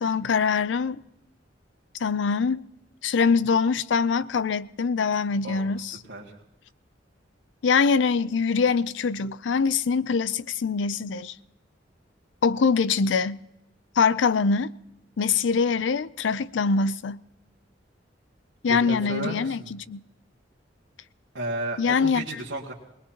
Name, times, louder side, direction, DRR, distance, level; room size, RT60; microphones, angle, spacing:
voice 1, 0.0-1.0 2.0-2.7 3.0-6.0 7.6-11.4 12.4-13.4 14.0-14.7 15.2-17.2 18.6-20.0 21.8-22.3, left 5 dB, 75° left, 0.5 m, -23 dB
voice 2, 18.7-19.7 21.3-22.7, right 1 dB, 75° right, 1.9 m, -33 dB
21.0 x 20.5 x 2.9 m
head